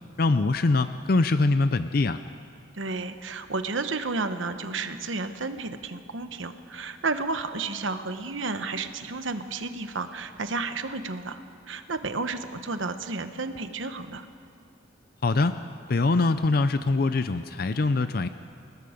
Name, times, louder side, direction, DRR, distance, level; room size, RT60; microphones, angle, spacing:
voice 1, 0.2-2.2 15.2-15.6 15.9-18.3, left 3 dB, 50° left, 11 dB, 0.5 m, -23 dB
voice 2, 2.7-11.4 11.7-14.2, right 3 dB, 85° right, 9 dB, 1.1 m, -32 dB
27.5 x 19.5 x 5.2 m, 2.4 s
head